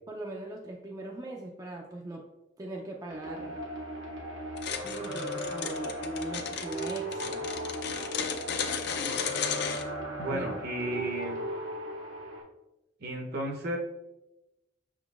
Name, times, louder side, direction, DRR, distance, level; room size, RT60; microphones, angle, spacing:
voice 1, 0.1-2.2 2.6-3.6 4.8-7.5 10.3-10.5, right 1 dB, 20° right, -1 dB, 0.4 m, -40 dB
sound 1, 3.1-12.4, equal, 80° right, 1.0 m, -37 dB
sound 2, 4.6-9.8, left 7 dB, 60° left, 0.4 m, -34 dB
voice 2, 10.2-11.5 13.0-13.8, right 1 dB, 55° right, 1 dB, 0.7 m, -33 dB
5.8 x 3.7 x 2.3 m, 0.96 s
head